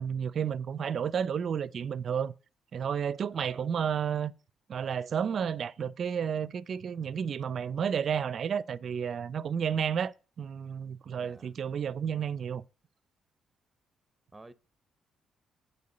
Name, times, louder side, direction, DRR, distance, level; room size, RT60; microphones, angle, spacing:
voice 1, 0.0-2.3 2.7-4.3 4.7-12.6, right 7 dB, 55° right, 0.5 m, -31 dB
voice 2, 3.3-3.6 11.2-11.5 14.3-14.5, right 2 dB, 15° right, 0.8 m, -52 dB
8.5 x 4.4 x 6.6 m
cardioid pair, 90°, 0 cm